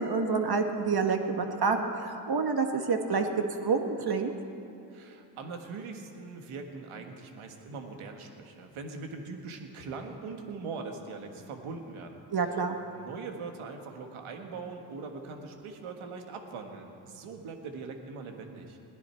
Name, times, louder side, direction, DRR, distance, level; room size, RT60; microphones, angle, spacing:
voice 1, 0.0-3.3 3.6-4.3 12.3-12.8, right 4 dB, 50° right, 5 dB, 1.5 m, -28 dB
voice 2, 4.9-12.2 12.8-18.8, right 4 dB, 85° right, 4 dB, 1.7 m, -41 dB
20.5 x 15.5 x 4.5 m, 2.7 s
cardioid pair, 60°, 48 cm